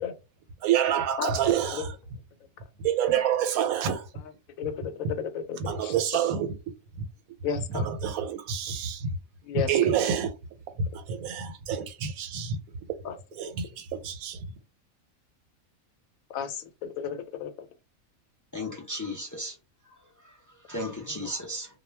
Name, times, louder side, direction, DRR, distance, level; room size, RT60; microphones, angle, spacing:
voice 1, 0.6-1.9 2.8-4.0 5.6-6.5 7.7-9.1 9.7-10.3 10.8-12.6 13.4-14.4, right 8 dB, 90° right, 1.0 m, -27 dB
voice 2, 4.6-6.3 7.4-7.9 9.4-9.9 13.0-13.2 16.3-17.5 21.1-21.2, left 7 dB, 80° left, 1.0 m, -33 dB
voice 3, 18.5-19.5 20.7-21.7, left 1 dB, 30° left, 0.3 m, -34 dB
2.3 x 2.1 x 3.2 m
omnidirectional pair, 1.4 m